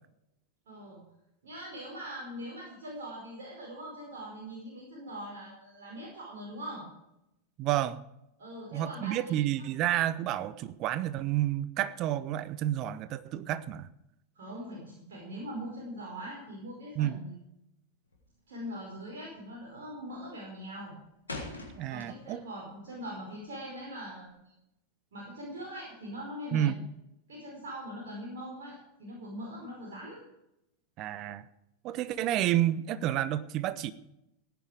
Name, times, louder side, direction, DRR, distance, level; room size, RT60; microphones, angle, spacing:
voice 1, 0.7-1.0 1.4-6.8 8.4-9.4 14.3-17.4 18.5-20.9 21.9-24.5 25.1-26.8 27.3-30.2, equal, 60° right, -4 dB, 5.1 m, -42 dB
voice 2, 7.6-8.0 8.7-13.9 17.0-17.2 21.8-22.4 26.5-26.7 31.0-31.4 31.8-33.9, right 12 dB, 40° right, 15 dB, 0.9 m, -30 dB
sound 1, 18.0-18.4 18.7-19.1 19.4-19.9 20.2-22.5 22.8-24.3, left 2 dB, 80° left, 3.2 m, -43 dB
17.0 x 10.0 x 5.1 m, 0.84 s
figure-of-eight pair, 90°, 0 cm